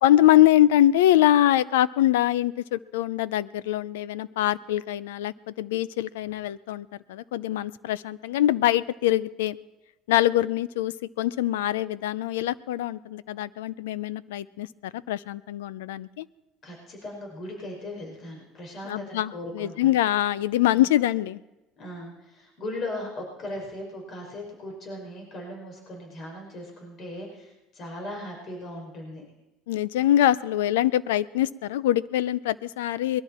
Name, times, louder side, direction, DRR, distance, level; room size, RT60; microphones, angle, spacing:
voice 1, 0.0-9.6 10.1-16.3 18.8-21.4 29.7-33.2, left 13 dB, 85° left, 19 dB, 0.5 m, -23 dB
voice 2, 16.6-20.0 20.7-20.8 21.8-29.2, left 1 dB, 50° left, 0 dB, 5.0 m, -38 dB
21.5 x 13.0 x 4.4 m, 1.0 s
hypercardioid pair, 75°, 0 cm